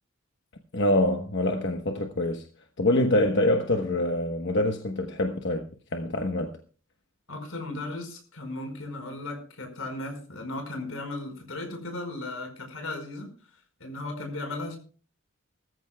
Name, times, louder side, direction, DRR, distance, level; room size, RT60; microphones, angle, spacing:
voice 1, 0.7-2.4 2.8-5.7 5.9-6.5, left 1 dB, 60° left, 1.1 m, -25 dB
voice 2, 7.3-13.3 13.8-14.8, left 2 dB, 85° left, 5.0 m, -36 dB
20.5 x 14.0 x 2.3 m
head